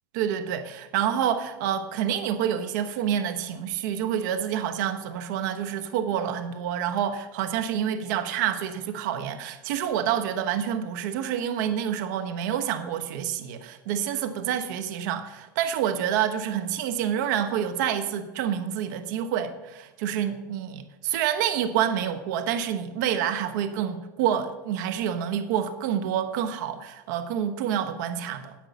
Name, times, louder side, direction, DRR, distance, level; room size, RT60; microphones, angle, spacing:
voice 1, 0.1-28.6, right 9 dB, 70° right, 9 dB, 1.0 m, -28 dB
10.5 x 7.9 x 7.0 m, 1.1 s
supercardioid pair, 115°, 10 cm